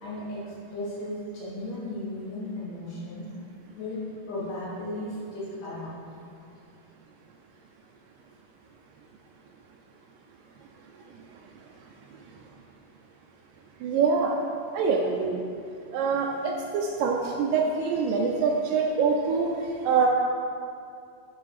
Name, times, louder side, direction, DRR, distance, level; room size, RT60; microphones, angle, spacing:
voice 1, 0.0-3.3 3.7-6.1, left 1 dB, 70° left, -7 dB, 3.2 m, -35 dB
voice 2, 13.8-14.4 14.7-15.4 15.9-20.1, right 5 dB, 80° right, 0 dB, 2.1 m, -25 dB
8.5 x 4.8 x 4.9 m, 2.4 s
omnidirectional pair, 3.9 m